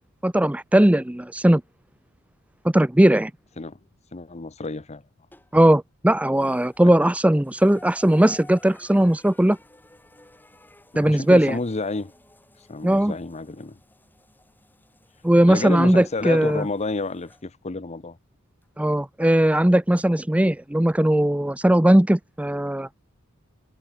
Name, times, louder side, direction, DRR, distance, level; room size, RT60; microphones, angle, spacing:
voice 1, 0.0-1.6 2.6-3.3 5.5-9.6 11.0-11.6 12.8-13.1 15.2-16.6 18.8-22.9, right 1 dB, 5° right, 0.5 m, -18 dB
voice 2, 4.1-5.0 10.9-12.1 12.7-13.8 15.4-18.2, left 3 dB, 30° left, 0.8 m, -30 dB
sound 1, 5.3-5.8 6.3-17.5 18.6-18.7 20.0-20.1, left 1 dB, 10° left, 4.5 m, -53 dB
head